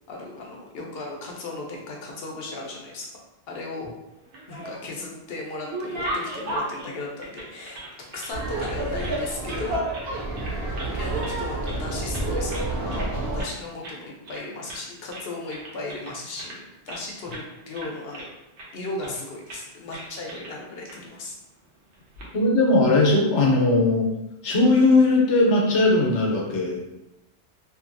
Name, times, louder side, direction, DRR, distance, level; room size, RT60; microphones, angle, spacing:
voice 1, 0.1-3.1 3.5-3.9 4.5-10.2 10.8-18.3 18.7-21.3, left 2 dB, 65° left, -1 dB, 0.8 m, -36 dB
sound 1, 4.2-5.0 5.4-8.3 8.6-9.7 9.9-10.1 10.4-11.0 11.2-11.8 12.1-13.1 13.4-13.6 13.8-14.0 14.3-14.9 15.1-17.0 17.3-17.5 17.7-18.7 19.0-19.2 19.5-19.6 19.9-20.5 20.9-21.0 21.9-22.3, right 1 dB, 85° right, 1.1 m, -36 dB
Laughter, 8.3-13.4, right 2 dB, 65° right, 0.9 m, -29 dB
voice 2, 22.3-24.1 24.4-26.8, left 2 dB, 85° left, -2 dB, 1.0 m, -19 dB
2.7 x 2.6 x 2.5 m, 0.91 s
omnidirectional pair, 1.2 m